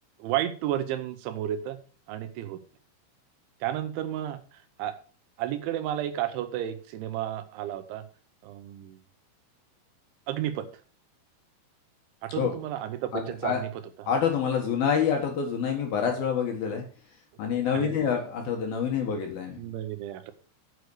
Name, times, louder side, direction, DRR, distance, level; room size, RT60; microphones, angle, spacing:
voice 1, 0.2-1.8 2.1-2.6 3.6-5.0 5.4-8.1 8.4-9.0 10.3-10.7 12.2-13.7 14.0-14.1 17.6-17.9 19.0-19.2 19.6-20.3, right 12 dB, 80° right, 10 dB, 3.1 m, -32 dB
voice 2, 13.1-13.6 14.1-16.8 17.4-19.6, left 7 dB, 65° left, 2 dB, 2.7 m, -27 dB
8.2 x 6.6 x 6.3 m, 0.39 s
omnidirectional pair, 5.6 m